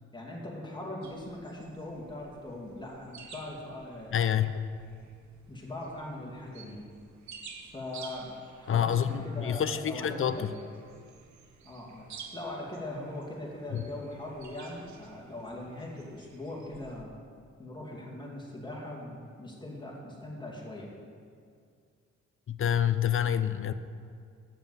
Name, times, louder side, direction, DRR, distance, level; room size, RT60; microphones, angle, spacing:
voice 1, 0.1-4.1 5.5-6.8 7.7-10.5 11.6-12.1 12.3-17.1 17.6-20.9, left 1 dB, 15° left, -3 dB, 2.5 m, -40 dB
sound 1, 1.0-17.0, right 6 dB, 75° right, 1.0 m, -52 dB
voice 2, 4.1-4.6 8.7-10.5 13.7-13.8 22.5-23.7, left 9 dB, 45° left, 12 dB, 0.5 m, -27 dB
7.5 x 7.0 x 7.8 m, 2.2 s
cardioid pair, 75°, 29 cm